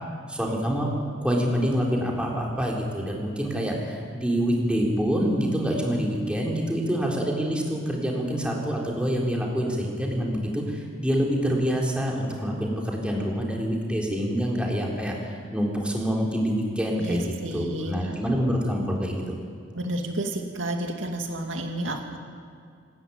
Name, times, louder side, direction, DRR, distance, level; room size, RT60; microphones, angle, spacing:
voice 1, 0.3-0.9 1.2-19.2, equal, 5° right, -2 dB, 3.7 m, -26 dB
voice 2, 17.0-17.9 19.7-22.2, right 1 dB, 80° right, 3 dB, 2.3 m, -31 dB
27.0 x 13.0 x 9.4 m, 2.3 s
head